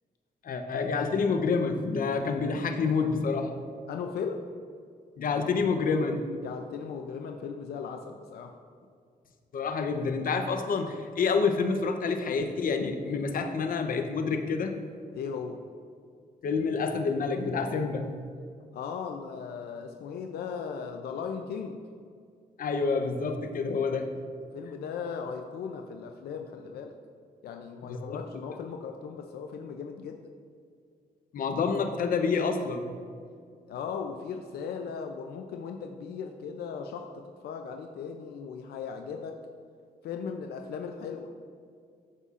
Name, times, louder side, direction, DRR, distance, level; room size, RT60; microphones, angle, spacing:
voice 1, 0.4-3.5 5.2-6.2 9.5-14.8 16.4-18.1 22.6-24.1 28.1-28.2 31.3-32.8, left 4 dB, 60° left, 6 dB, 0.7 m, -28 dB
voice 2, 3.9-4.4 6.4-8.6 15.1-15.6 18.7-21.8 24.5-26.9 27.4-30.2 33.7-39.4 40.0-41.3, left 6 dB, 90° left, 4 dB, 0.5 m, -37 dB
13.5 x 5.5 x 2.5 m, 2.2 s
cardioid pair, 95°, 16 cm